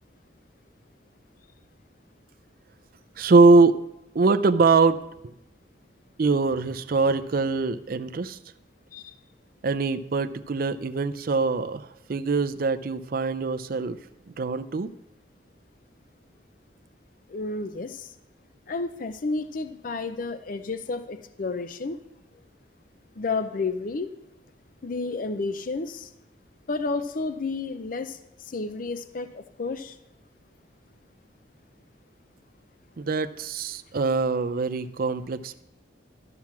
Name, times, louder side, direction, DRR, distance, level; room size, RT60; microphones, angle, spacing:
voice 1, 3.2-3.8 4.1-5.0 6.2-8.4 9.6-14.0 14.3-14.9 33.0-35.6, right 3 dB, 50° right, 10 dB, 0.4 m, -23 dB
voice 2, 17.3-18.1 18.7-22.0 23.2-24.1 24.8-26.1 26.7-28.2 28.4-30.0, left 3 dB, 45° left, 10 dB, 0.5 m, -31 dB
12.5 x 5.9 x 5.8 m, 0.85 s
head